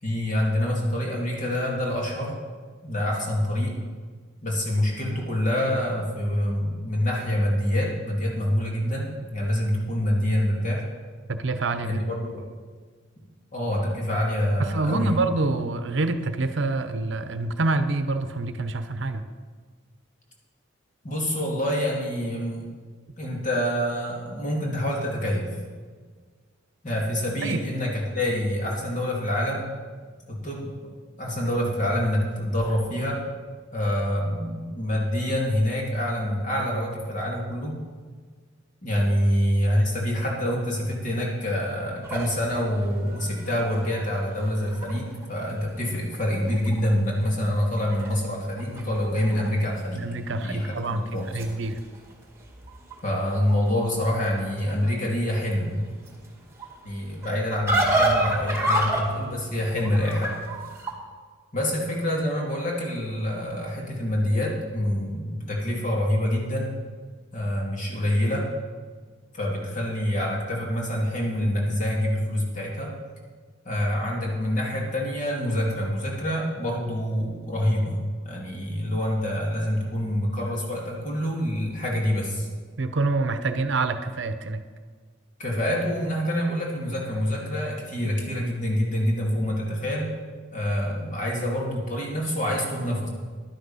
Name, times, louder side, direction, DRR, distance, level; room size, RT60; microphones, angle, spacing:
voice 1, 0.0-2.4 2.8-3.8 4.4-10.9 11.8-12.4 13.5-15.2 21.0-22.7 23.2-25.5 26.8-29.7 30.3-30.7 31.2-33.2 33.7-37.8 38.8-50.0 50.3-51.3 53.0-55.8 56.8-60.3 61.5-66.8 67.3-68.5 69.3-73.0 73.6-82.5 85.4-90.1 90.5-93.1, equal, 40° left, -2 dB, 2.6 m, -26 dB
voice 2, 11.3-12.0 14.6-19.2 27.4-27.6 49.9-51.8 82.8-84.6, right 3 dB, 65° right, 10 dB, 0.8 m, -26 dB
sound 1, 42.0-45.3 45.7-45.8 46.1-46.9 47.2-49.5 49.8-50.3 50.9-60.9, right 1 dB, 15° right, 1.7 m, -30 dB
11.0 x 9.9 x 5.6 m, 1.5 s
head